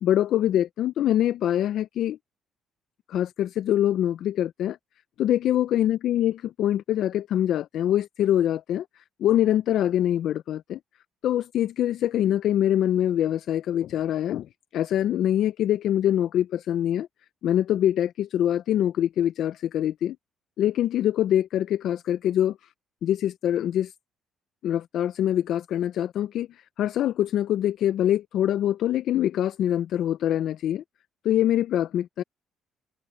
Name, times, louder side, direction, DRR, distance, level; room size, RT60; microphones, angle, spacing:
voice 1, 0.0-2.2 3.1-4.8 5.2-10.8 11.2-14.5 14.7-17.1 17.4-20.2 20.6-22.7 23.0-23.9 24.6-30.8 31.2-32.2, left 11 dB, 70° left, 0.5 m, -24 dB
cardioid pair, 90°, 0 cm